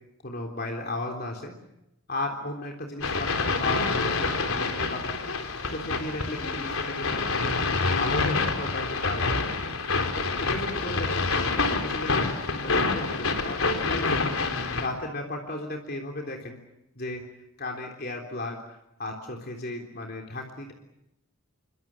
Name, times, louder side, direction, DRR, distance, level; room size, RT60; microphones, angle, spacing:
voice 1, 0.2-1.5 2.1-5.2 5.7-9.5 10.1-14.2 14.8-16.6 17.0-17.2 17.6-18.6 19.0-20.7, left 2 dB, 45° left, 2 dB, 3.6 m, -35 dB
sound 1, 3.0-14.9, left 3 dB, 80° left, 4.0 m, -27 dB
29.0 x 24.5 x 7.4 m, 0.86 s
head